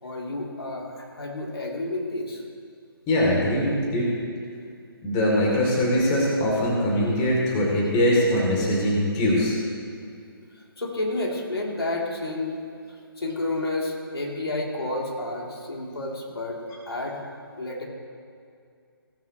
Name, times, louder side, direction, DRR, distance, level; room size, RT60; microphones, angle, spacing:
voice 1, 0.0-2.4 10.5-12.6 12.9-16.6 16.9-17.2 17.6-17.8, left 2 dB, 75° left, -2 dB, 3.1 m, -30 dB
voice 2, 3.1-4.1 5.0-9.5, left 1 dB, 20° left, -3 dB, 3.0 m, -22 dB
18.0 x 12.5 x 3.1 m, 2.3 s
figure-of-eight pair, 145°, 13 cm